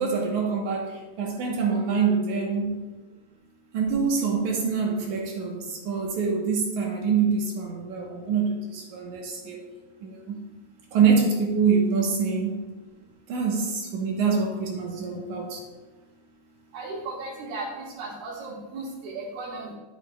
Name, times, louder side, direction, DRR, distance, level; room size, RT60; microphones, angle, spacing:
voice 1, 0.0-2.8 3.7-9.6 10.0-10.4 10.9-12.6 13.3-15.6, right 5 dB, 70° right, 0 dB, 2.2 m, -25 dB
voice 2, 16.7-17.7 18.0-19.7, right 3 dB, 90° right, -8 dB, 3.3 m, -35 dB
12.0 x 7.7 x 2.3 m, 1.2 s
omnidirectional pair, 4.2 m